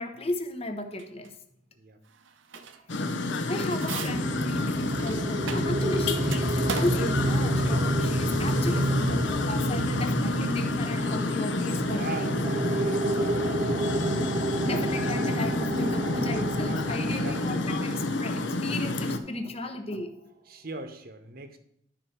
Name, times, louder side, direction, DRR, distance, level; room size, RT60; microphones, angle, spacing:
voice 1, 0.0-1.3 2.5-2.6 3.5-12.3 14.6-17.9 18.2-20.1, left 2 dB, 30° left, 6 dB, 0.9 m, -34 dB
sound 1, 1.0-1.4 2.0-3.0 3.3-5.9 6.2-18.6, right 5 dB, 80° right, 0.7 m, -42 dB
sound 2, 2.9-19.2, left 2 dB, 70° left, 0.7 m, -29 dB
sound 3, 3.6-18.4, right 1 dB, 25° right, 0.5 m, -30 dB
voice 2, 7.6-8.0 9.0-9.3 11.9-13.9 16.0-16.8 17.1-17.7 20.5-21.6, right 2 dB, 50° right, 8 dB, 0.9 m, -42 dB
11.5 x 4.4 x 5.8 m, 0.73 s
head